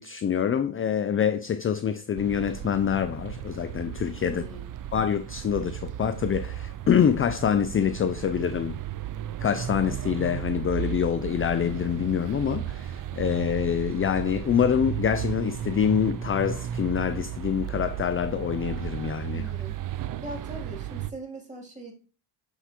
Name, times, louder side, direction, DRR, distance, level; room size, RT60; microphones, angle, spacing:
voice 1, 0.0-4.4 4.9-8.8 9.4-19.4, left 8 dB, 30° left, 0.4 m, -26 dB
sound 1, 2.2-21.1, right 11 dB, 45° right, 0.5 m, -34 dB
voice 2, 4.2-4.7 19.3-19.8 20.2-21.9, right 1 dB, 15° right, 3.0 m, -40 dB
8.1 x 4.6 x 2.9 m
cardioid pair, 80°, 48 cm